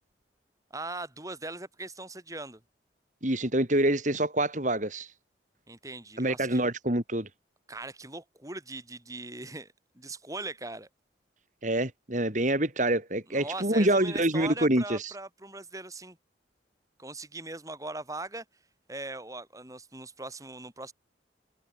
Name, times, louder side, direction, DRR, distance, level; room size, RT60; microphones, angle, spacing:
voice 1, 0.7-2.6 5.7-6.6 7.7-10.9 13.3-16.2 17.0-18.4 18.9-20.9, right 2 dB, 20° right, 6.5 m, -40 dB
voice 2, 3.2-5.1 6.2-7.3 11.6-15.1, right 1 dB, 45° right, 3.8 m, -26 dB
head